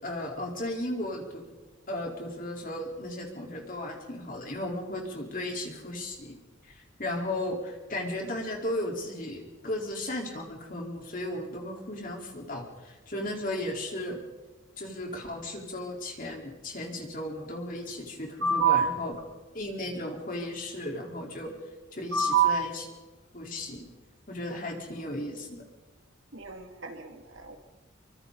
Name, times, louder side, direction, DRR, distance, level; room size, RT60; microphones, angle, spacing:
voice 1, 0.0-1.4 1.9-6.4 6.6-14.2 14.8-19.1 19.5-21.5 21.9-22.8 23.3-23.8 24.3-25.6, left 1 dB, 40° left, 0 dB, 4.2 m, -35 dB
voice 2, 18.4-18.9 22.1-22.6 26.3-27.6, right 6 dB, 70° right, 4 dB, 2.5 m, -26 dB
27.0 x 24.5 x 4.1 m, 1.2 s
head